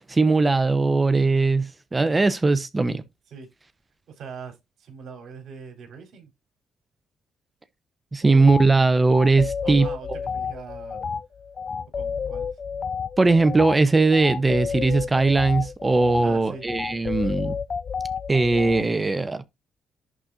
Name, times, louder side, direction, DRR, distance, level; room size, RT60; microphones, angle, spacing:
voice 1, 0.1-3.0 8.1-9.9 13.2-17.6 18.3-19.4, right 3 dB, 20° right, 0.8 m, -20 dB
voice 2, 4.1-6.3 8.2-8.5 9.6-10.1 10.3-11.0 11.9-12.5 16.2-16.6, right 5 dB, 70° right, 4.0 m, -41 dB
sound 1, 8.5-8.7 9.1-18.8, left 6 dB, 45° left, 0.4 m, -31 dB
11.0 x 4.3 x 2.6 m
cardioid pair, 90°, 0 cm